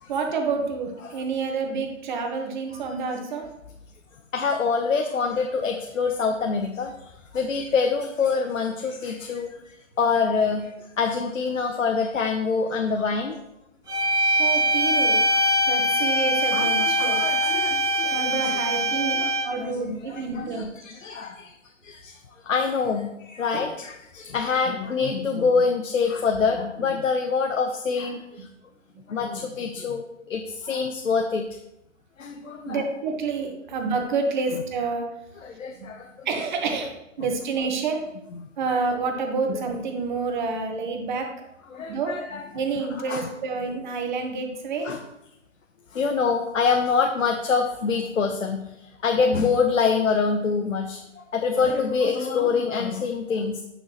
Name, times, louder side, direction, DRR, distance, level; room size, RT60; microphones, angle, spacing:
voice 1, 0.1-3.5 14.4-15.2 15.7-17.2 18.1-19.1 19.4-20.7 23.5-23.6 32.7-35.1 35.8-35.9 36.2-36.9 37.2-38.0 38.6-41.3 41.9-42.1 42.5-44.9, right 4 dB, 35° right, 4 dB, 1.3 m, -28 dB
voice 2, 4.3-9.5 10.0-13.4 14.1-14.2 16.5-18.5 18.9-19.3 19.6-21.5 21.8-22.2 22.4-28.5 29.1-31.4 32.2-32.8 35.4-36.3 38.4-38.5 39.5-39.6 41.7-42.4 43.1-43.3 44.8-45.0 45.9-53.6, left 5 dB, 80° left, 3 dB, 1.0 m, -25 dB
sound 1, 13.9-19.6, equal, 10° right, 1.4 m, -22 dB
9.2 x 6.2 x 3.0 m, 0.85 s
hypercardioid pair, 150°, 38 cm